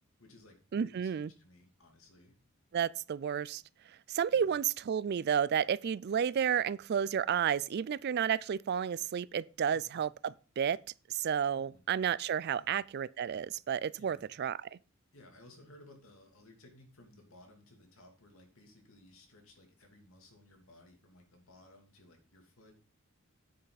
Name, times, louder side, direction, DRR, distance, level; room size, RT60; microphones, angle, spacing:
voice 1, 0.2-2.4 4.3-4.6 9.7-10.0 11.6-11.9 12.5-12.8 14.0-14.3 15.1-22.7, left 1 dB, 85° left, 2.6 m, -58 dB
voice 2, 0.7-1.3 2.7-3.6 4.1-10.8 11.1-14.7, right 8 dB, 50° right, 0.3 m, -31 dB
9.4 x 8.0 x 4.0 m
head